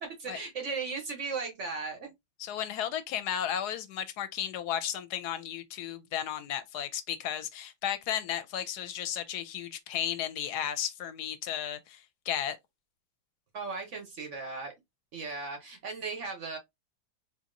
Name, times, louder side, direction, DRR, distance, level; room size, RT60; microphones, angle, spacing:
voice 1, 0.0-2.1 13.5-14.7 15.1-16.6, right 4 dB, 55° right, 1.0 m, -37 dB
voice 2, 2.4-12.6, left 10 dB, 75° left, 1.0 m, -34 dB
3.8 x 2.8 x 2.5 m
omnidirectional pair, 1.8 m